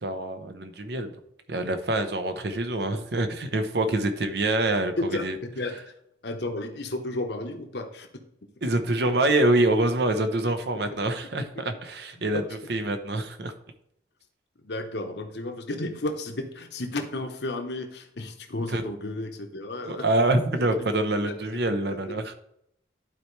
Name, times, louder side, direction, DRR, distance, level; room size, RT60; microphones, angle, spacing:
voice 1, 0.0-1.1 1.5-5.4 8.6-12.4 12.7-13.5 18.7-18.8 19.8-22.3, right 2 dB, 65° right, 7 dB, 0.8 m, -25 dB
voice 2, 5.0-5.9 6.2-8.1 10.9-11.0 14.6-20.1 20.7-20.9 21.2-21.4 21.9-22.1, left 2 dB, 65° left, 5 dB, 1.0 m, -33 dB
12.0 x 4.5 x 3.2 m, 0.77 s
head